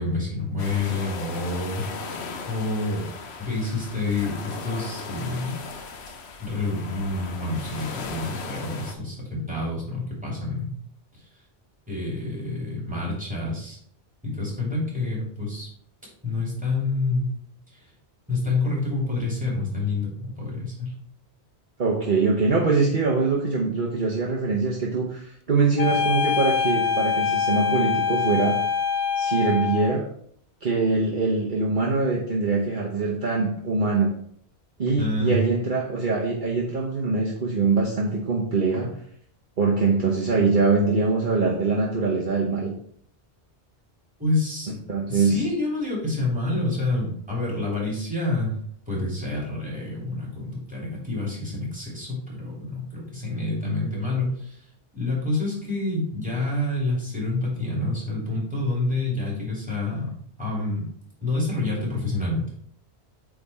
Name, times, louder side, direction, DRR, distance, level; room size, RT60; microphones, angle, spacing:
voice 1, 0.0-1.8 2.5-3.0 3.4-5.6 6.4-10.7 11.9-13.8 14.2-15.7 16.2-17.3 18.3-20.9 35.0-35.4 44.2-44.8 45.1-48.5 48.9-54.6 54.9-60.1 60.4-60.9 61.2-62.5, left 2 dB, 5° right, -6 dB, 2.8 m, -28 dB
sound 1, 0.6-9.0, left 4 dB, 75° left, 1.0 m, -37 dB
voice 2, 21.8-28.6 29.2-30.0 30.6-34.1 34.8-38.9 39.6-42.7 44.9-45.4, right 4 dB, 50° right, -2 dB, 1.1 m, -23 dB
sound 2, 25.8-30.0, left 6 dB, 55° left, 0.5 m, -24 dB
8.5 x 3.7 x 4.2 m, 0.66 s
omnidirectional pair, 1.1 m